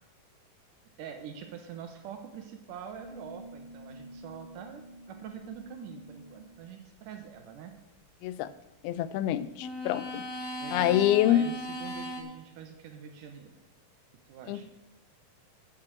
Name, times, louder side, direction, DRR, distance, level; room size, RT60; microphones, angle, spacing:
voice 1, 1.0-7.7 10.6-13.6 14.3-14.7, right 8 dB, 70° right, 5 dB, 2.2 m, -45 dB
sound 1, 3.0-6.5 9.6-12.2, equal, 60° left, 1.1 m, -41 dB
voice 2, 8.8-10.3 10.7-11.5 14.5-14.7, left 12 dB, 90° left, 15 dB, 2.5 m, -26 dB
9.0 x 6.7 x 7.3 m, 0.91 s
omnidirectional pair, 4.3 m